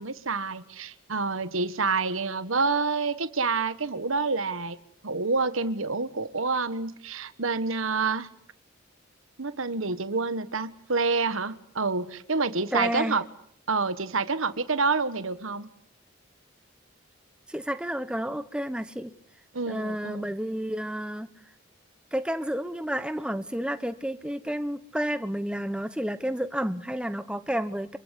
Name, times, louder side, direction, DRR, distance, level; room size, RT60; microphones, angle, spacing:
voice 1, 0.0-4.8 5.0-8.3 9.4-13.2 13.7-15.7 19.5-20.2, right 4 dB, 80° right, 1.4 m, -28 dB
voice 2, 12.7-13.2 17.5-19.1 19.7-21.3 22.1-28.0, equal, 5° right, 1.1 m, -30 dB
26.5 x 24.0 x 8.4 m
head